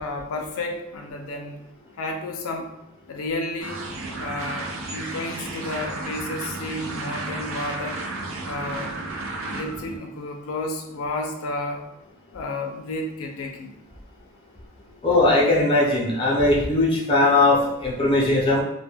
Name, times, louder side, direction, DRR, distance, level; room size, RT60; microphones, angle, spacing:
voice 1, 0.0-1.6 2.0-2.7 3.1-3.8 4.2-8.1 8.5-8.9 9.5-11.8 12.3-13.7, left 2 dB, 80° left, 3 dB, 0.4 m, -31 dB
sound 1, 3.6-10.0, right 2 dB, 75° right, 0.4 m, -33 dB
voice 2, 15.0-18.6, left 2 dB, 25° left, -4 dB, 0.5 m, -19 dB
2.1 x 2.1 x 3.2 m, 0.88 s
head